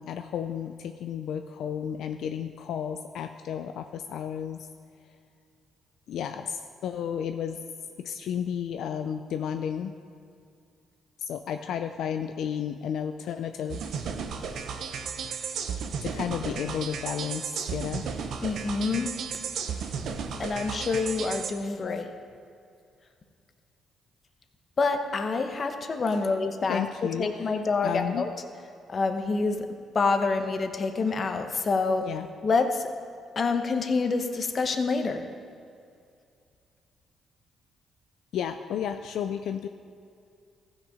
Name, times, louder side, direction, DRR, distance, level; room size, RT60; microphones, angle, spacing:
voice 1, 0.0-4.7 6.1-7.6 8.0-9.9 11.2-14.1 16.0-18.1 21.8-22.3 26.7-27.3 27.8-28.3 32.0-32.3 38.3-39.7, left 8 dB, 75° left, 7 dB, 0.4 m, -32 dB
sound 1, 13.7-21.5, right 6 dB, 70° right, 0.8 m, -34 dB
voice 2, 18.4-19.1 20.4-22.1 24.8-26.8 27.2-28.3 28.9-29.7 29.9-32.1 32.4-32.8 33.4-35.3, left 4 dB, 40° left, 6 dB, 0.9 m, -27 dB
14.5 x 6.3 x 5.0 m, 2.4 s
cardioid pair, 90°, 0 cm